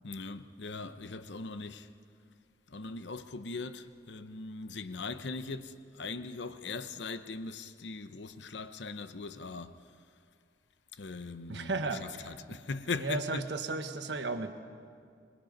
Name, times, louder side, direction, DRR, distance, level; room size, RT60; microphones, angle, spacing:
voice 1, 0.0-1.9 2.7-9.9 10.9-13.5, left 3 dB, 75° left, 0.8 m, -40 dB
voice 2, 11.5-12.0 12.5-12.6 13.0-14.6, right 3 dB, 75° right, 1.4 m, -34 dB
26.0 x 20.5 x 5.3 m
head